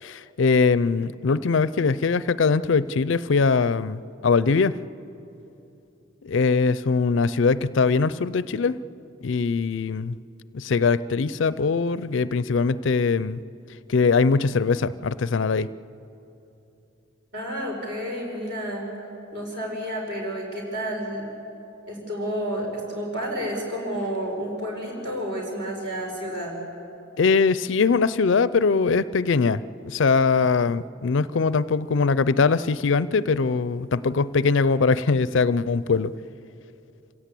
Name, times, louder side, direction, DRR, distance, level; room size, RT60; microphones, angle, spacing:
voice 1, 0.0-4.8 6.2-8.8 9.2-10.2 10.5-13.4 13.9-15.7 27.2-36.1, left 4 dB, 65° left, 17 dB, 0.5 m, -22 dB
voice 2, 17.3-18.9 19.3-21.2 21.9-26.6, equal, 55° right, 0 dB, 5.2 m, -30 dB
26.0 x 16.5 x 8.4 m, 2.8 s
head